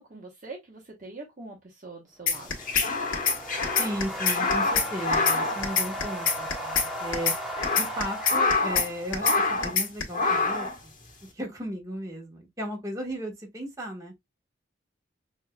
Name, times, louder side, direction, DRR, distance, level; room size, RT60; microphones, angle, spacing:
voice 1, 0.0-2.5, right 3 dB, 40° right, 0.9 m, -43 dB
sound 1, 2.3-2.9 3.1-3.4 3.6-4.9 5.1-5.4 5.6-6.9 7.1-7.4 7.6-8.9 9.1-9.4 9.6-10.0, left 6 dB, 85° left, 1.3 m, -24 dB
sound 2, 2.3-9.4, equal, ahead, 0.9 m, -36 dB
sound 3, 2.4-6.4 6.7-6.8 7.3-8.9 9.2-9.8 10.1-10.8, left 3 dB, 45° left, 1.2 m, -27 dB
voice 2, 3.8-6.7 7.0-7.3 7.7-10.9 11.3-14.1, equal, 15° right, 1.3 m, -35 dB
6.1 x 2.6 x 2.2 m
head